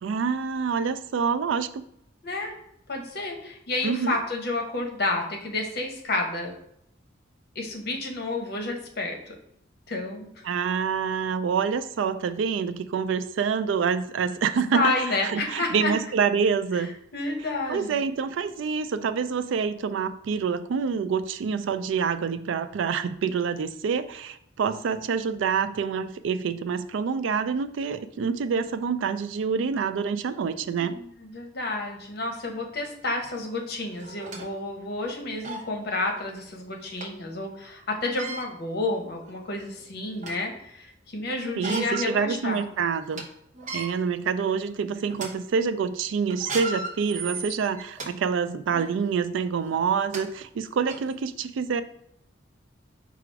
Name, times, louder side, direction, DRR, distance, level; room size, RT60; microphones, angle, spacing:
voice 1, 0.0-1.8 3.8-4.2 10.4-16.9 17.7-30.9 41.6-43.3 43.7-51.8, right 6 dB, 70° right, 12 dB, 0.3 m, -27 dB
voice 2, 2.2-2.5 2.9-6.5 7.5-9.3 9.9-10.5 14.7-15.9 16.7-16.9 17.1-18.0 30.6-42.6, left 2 dB, 55° left, 2 dB, 0.9 m, -30 dB
sound 1, 33.3-33.4 34.0-34.5 35.0-35.1 35.4-35.7 37.0-37.1 38.0-38.5 39.2-39.3 39.8-40.5 41.4-42.1 42.5-42.6 43.0-43.2 43.6-43.9 44.5-44.7 45.1-45.3 46.3-48.1 48.7-48.9 49.7-49.8 50.1-50.2 50.9-51.0, right 3 dB, 40° right, 0.9 m, -35 dB
4.9 x 2.4 x 4.5 m, 0.73 s
head